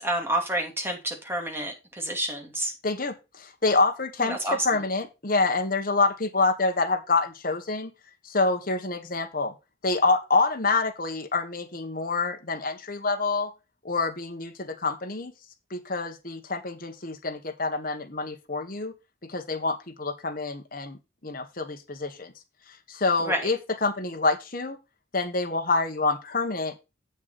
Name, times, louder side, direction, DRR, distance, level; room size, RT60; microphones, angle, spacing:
voice 1, 0.0-2.7 4.3-4.6 23.2-23.5, right 1 dB, 10° right, 2.5 m, -29 dB
voice 2, 2.8-7.9 8.2-9.5 9.8-13.5 13.8-15.3 15.7-18.9 19.2-22.3 22.9-24.8 25.1-26.7, left 3 dB, 45° left, 1.5 m, -27 dB
8.2 x 7.1 x 4.2 m
head